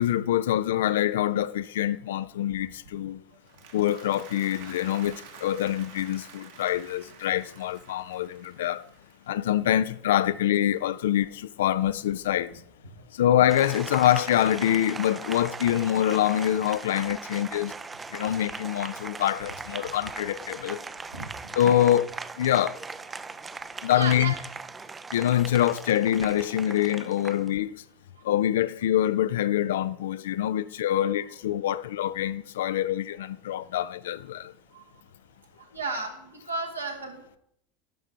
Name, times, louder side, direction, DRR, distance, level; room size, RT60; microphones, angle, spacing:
voice 1, 0.0-3.2 3.7-8.8 9.3-12.5 13.1-17.7 18.1-20.8 21.5-22.7 23.8-24.3 25.1-27.7 28.2-34.5, left 11 dB, 70° left, 0.3 m, -25 dB
Applause, 3.3-9.6, right 6 dB, 65° right, 1.4 m, -49 dB
Applause 2, 13.5-27.5, right 4 dB, 20° right, 0.4 m, -39 dB
voice 2, 23.9-24.3 35.7-37.2, right 3 dB, 85° right, 1.4 m, -32 dB
11.5 x 5.4 x 3.7 m
figure-of-eight pair, 80°, 0 cm